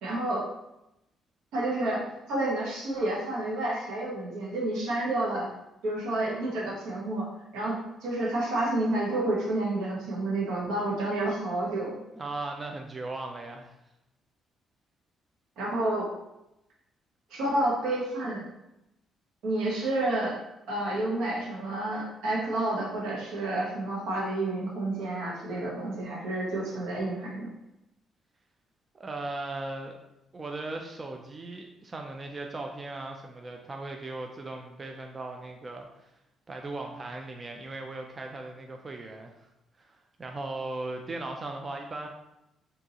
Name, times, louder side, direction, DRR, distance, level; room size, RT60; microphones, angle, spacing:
voice 1, 0.0-0.4 1.5-2.0 2.3-5.5 5.8-7.3 7.5-12.0 15.6-16.1 17.3-18.5 19.4-20.4 20.7-27.5, right 2 dB, 90° right, -4 dB, 1.1 m, -29 dB
voice 2, 12.2-13.8 28.9-30.0 30.3-36.1 36.5-39.5 39.8-42.1, right 2 dB, 30° right, 3 dB, 0.4 m, -38 dB
3.8 x 2.7 x 2.9 m, 0.88 s
cardioid pair, 90°, 0 cm